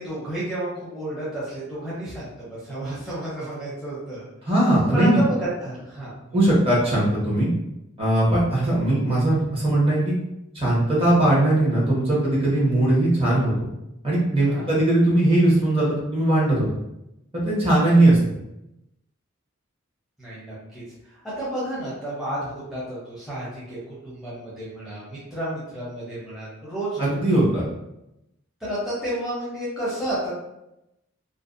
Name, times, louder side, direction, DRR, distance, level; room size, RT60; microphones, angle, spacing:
voice 1, 0.0-4.3 4.9-6.5 14.4-14.8 20.2-27.1 28.6-30.3, right 1 dB, ahead, -9 dB, 0.6 m, -31 dB
voice 2, 4.4-5.2 6.3-7.5 8.0-10.1 10.5-13.7 14.0-16.7 17.3-18.2 27.0-27.6, right 1 dB, 30° right, -6 dB, 0.8 m, -19 dB
2.5 x 2.0 x 2.4 m, 0.88 s
head